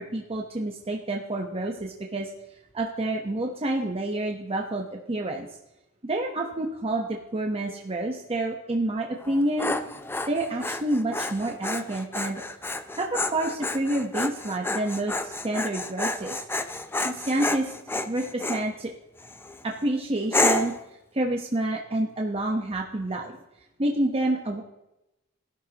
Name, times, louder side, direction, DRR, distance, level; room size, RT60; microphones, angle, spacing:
voice 1, 0.0-2.3 2.7-5.5 6.0-9.7 10.3-12.4 12.9-16.4 17.0-17.7 18.0-18.9 19.6-20.7 21.1-23.4 23.8-24.6, right 1 dB, 25° right, 1 dB, 1.0 m, -28 dB
Dog, 9.2-18.7 19.2-19.6 20.3-20.8, left 2 dB, 10° left, 0.6 m, -30 dB
18.0 x 11.5 x 3.0 m, 0.93 s
head